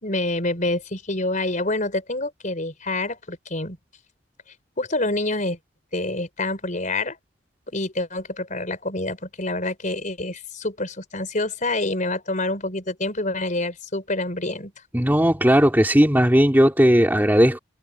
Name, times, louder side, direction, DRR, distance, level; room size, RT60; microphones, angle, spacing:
voice 1, 0.0-3.8 4.8-5.6 5.9-7.2 7.7-14.7, left 2 dB, 40° left, 4.8 m, -27 dB
voice 2, 14.9-17.6, equal, 10° right, 2.5 m, -17 dB
head